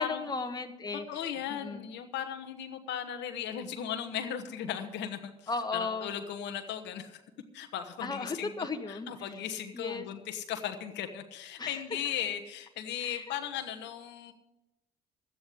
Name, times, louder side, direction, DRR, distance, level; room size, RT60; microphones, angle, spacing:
voice 1, 0.0-1.8 5.5-6.1 8.0-9.3 9.7-10.1 11.6-11.8 13.0-13.3, left 4 dB, 20° left, 5 dB, 1.4 m, -36 dB
voice 2, 1.1-7.2 7.5-8.5 8.9-14.3, left 9 dB, 70° left, 6 dB, 1.2 m, -37 dB
12.5 x 9.4 x 8.3 m, 0.95 s
hypercardioid pair, 65°, 19 cm